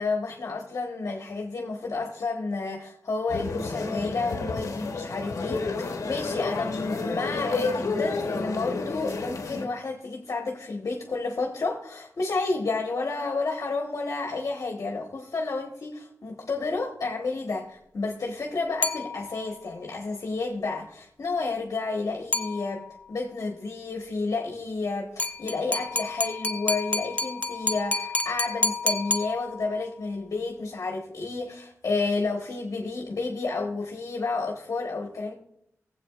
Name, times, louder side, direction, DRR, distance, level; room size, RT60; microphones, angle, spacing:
voice 1, 0.0-35.3, left 3 dB, 70° left, 1 dB, 1.3 m, -31 dB
sound 1, 3.3-9.7, left 3 dB, 90° left, 1.0 m, -30 dB
sound 2, 18.8-19.6 22.3-23.1 25.2-29.9, left 2 dB, 25° left, 0.7 m, -30 dB
18.5 x 8.0 x 2.5 m, 0.73 s
wide cardioid pair, 80°, 6 cm